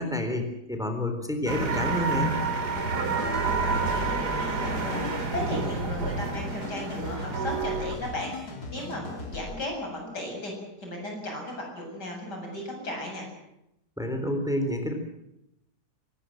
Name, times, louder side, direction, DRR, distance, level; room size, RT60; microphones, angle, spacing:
voice 1, 0.0-2.3 14.0-14.9, left 1 dB, ahead, 5 dB, 3.7 m, -29 dB
sound 1, 1.5-7.9, right 4 dB, 75° right, 3.1 m, -29 dB
sound 2, 2.8-9.6, left 2 dB, 65° left, 3.6 m, -39 dB
voice 2, 2.9-10.5 10.8-13.3, left 1 dB, 85° left, 1 dB, 8.2 m, -36 dB
23.5 x 20.5 x 7.8 m, 0.84 s
omnidirectional pair, 1.8 m